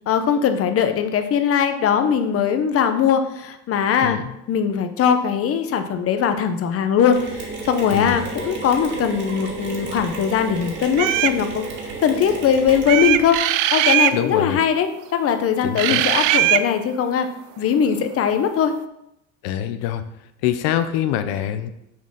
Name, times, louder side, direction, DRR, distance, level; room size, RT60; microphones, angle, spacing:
voice 1, 0.1-4.2 4.5-11.6 12.0-13.4 13.7-17.3 17.6-18.7, left 7 dB, 40° left, 8 dB, 0.9 m, -20 dB
Mechanisms, 7.1-13.3, right 3 dB, 30° right, 2.3 m, -32 dB
voice 2, 7.9-8.2 14.1-14.6 15.6-16.0 19.4-20.1 20.4-21.7, left 10 dB, 75° left, 10 dB, 0.8 m, -24 dB
sound 1, 10.9-11.4 12.9-14.2 15.8-16.7, right 14 dB, 60° right, 0.5 m, -19 dB
7.2 x 4.2 x 6.4 m, 0.82 s
supercardioid pair, 120°, 36 cm